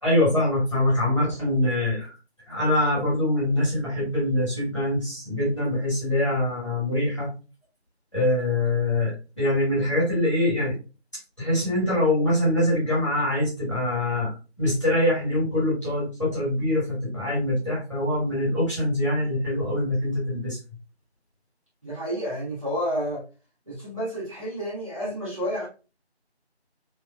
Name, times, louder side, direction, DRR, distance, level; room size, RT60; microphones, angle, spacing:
voice 1, 0.0-2.1 2.5-7.3 8.1-10.7 11.4-20.6, left 1 dB, 25° left, 1.8 m, -24 dB
voice 2, 21.8-23.2 23.7-25.7, equal, 30° right, 1.4 m, -30 dB
3.2 x 2.8 x 2.3 m
figure-of-eight pair, 175°, 33 cm